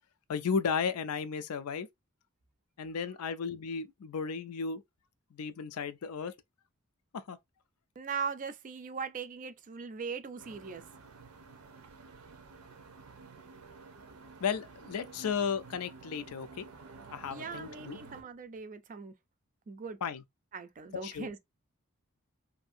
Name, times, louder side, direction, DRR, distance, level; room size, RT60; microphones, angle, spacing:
voice 1, 0.3-1.9 2.8-4.8 5.3-6.3 7.1-7.4 14.4-16.7 17.1-18.0 20.0-20.2 20.9-21.3, left 6 dB, 85° left, 0.4 m, -34 dB
voice 2, 8.0-10.8 17.3-19.1 19.7-20.0 20.5-21.4, right 5 dB, 35° right, 0.4 m, -39 dB
sound 1, 10.4-18.2, right 4 dB, 80° right, 0.7 m, -51 dB
2.7 x 2.6 x 2.5 m
head